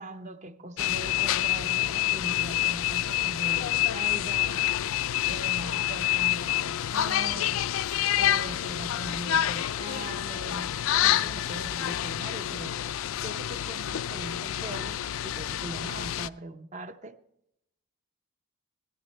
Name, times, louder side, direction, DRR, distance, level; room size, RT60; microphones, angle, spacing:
voice 1, 0.0-4.7 5.3-7.7 8.2-12.8 13.2-17.2, right 2 dB, 35° right, 0.6 m, -41 dB
sound 1, 0.8-16.3, left 12 dB, 85° left, 0.3 m, -28 dB
16.0 x 13.0 x 3.2 m
head